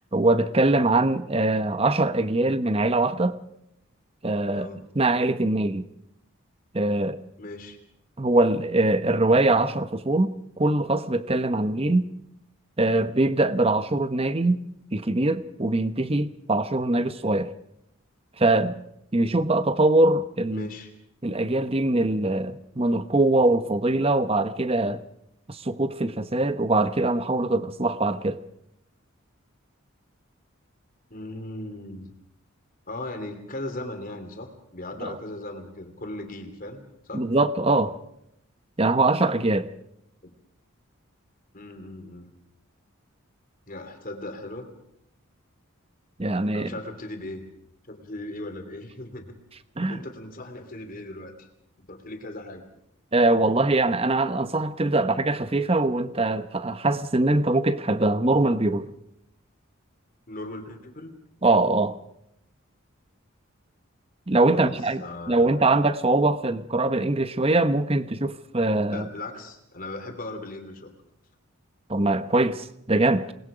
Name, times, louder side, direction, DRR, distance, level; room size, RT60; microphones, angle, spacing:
voice 1, 0.1-3.4 4.2-4.7 4.9-5.8 6.7-7.2 8.2-12.1 12.8-14.6 14.9-17.5 18.4-18.8 19.1-20.7 21.2-25.0 25.5-28.4 35.0-35.1 37.1-38.0 38.8-39.7 46.2-46.7 49.8-50.0 53.1-58.9 61.4-62.0 64.3-69.1 71.9-73.3, right 2 dB, 25° right, 0.9 m, -22 dB
voice 2, 7.4-7.8 20.5-20.9 31.1-32.1 32.9-37.2 40.2-40.3 41.5-42.3 43.7-44.7 46.5-47.5 47.9-49.3 49.8-51.5 51.9-52.6 60.3-61.2 64.5-64.7 65.0-65.7 68.9-70.9, left 1 dB, 40° left, 3.1 m, -38 dB
28.0 x 20.5 x 5.1 m
head